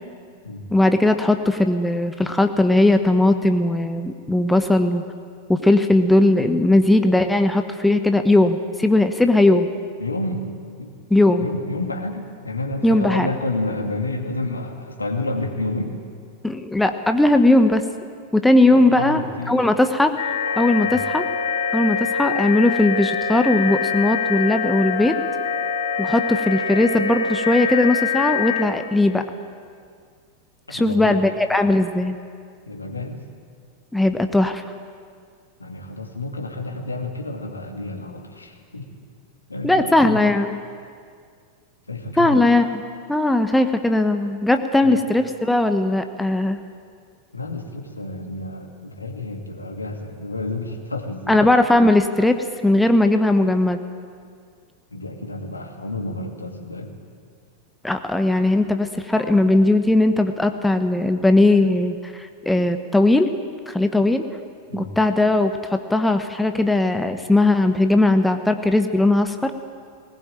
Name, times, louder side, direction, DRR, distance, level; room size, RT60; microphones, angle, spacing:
voice 1, 0.7-5.0 5.5-9.7 11.1-11.5 12.8-13.3 16.4-17.8 18.3-19.2 19.5-20.3 20.6-21.2 21.7-25.2 26.0-29.2 30.7-32.2 33.9-34.6 39.6-40.6 42.2-42.7 43.1-46.6 51.3-52.4 52.6-53.8 57.8-63.3 63.7-64.2 64.7-69.5, left 2 dB, 5° left, 7 dB, 1.1 m, -18 dB
voice 2, 10.0-10.5 10.8-11.0 11.4-16.0 18.7-19.6 20.8-21.1 30.7-31.2 32.6-33.3 35.6-38.9 39.5-40.3 41.9-42.4 44.8-45.0 47.3-51.5 54.9-56.9 64.7-64.9, left 2 dB, 80° left, 3 dB, 2.5 m, -30 dB
sound 1, 20.2-28.6, left 6 dB, 60° left, 5.4 m, -24 dB
19.5 x 19.5 x 8.9 m, 2.1 s
figure-of-eight pair, 90°, 0 cm